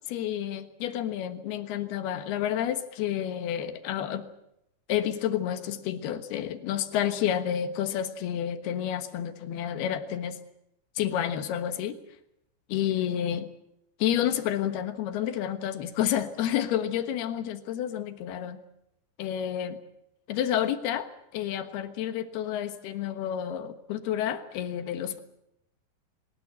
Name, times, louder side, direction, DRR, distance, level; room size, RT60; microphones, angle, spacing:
voice 1, 0.1-4.3 4.9-10.4 11.0-12.0 12.7-13.5 14.0-18.6 19.2-19.8 20.3-25.2, left 10 dB, 70° left, 10 dB, 3.2 m, -30 dB
22.0 x 20.0 x 7.8 m, 0.80 s
omnidirectional pair, 5.0 m